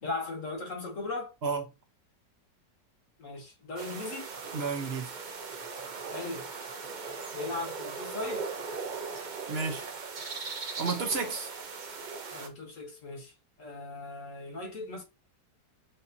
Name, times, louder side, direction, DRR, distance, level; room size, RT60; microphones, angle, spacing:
voice 1, 0.0-1.3 3.2-4.3 6.1-6.5 7.3-8.5 12.3-15.0, left 3 dB, 50° left, 1.6 m, -38 dB
sound 1, 3.8-12.5, right 4 dB, 75° right, 0.4 m, -39 dB
voice 2, 4.5-5.1 9.5-9.8 10.8-11.5, right 4 dB, 50° right, 0.8 m, -31 dB
6.8 x 2.7 x 2.7 m
omnidirectional pair, 1.9 m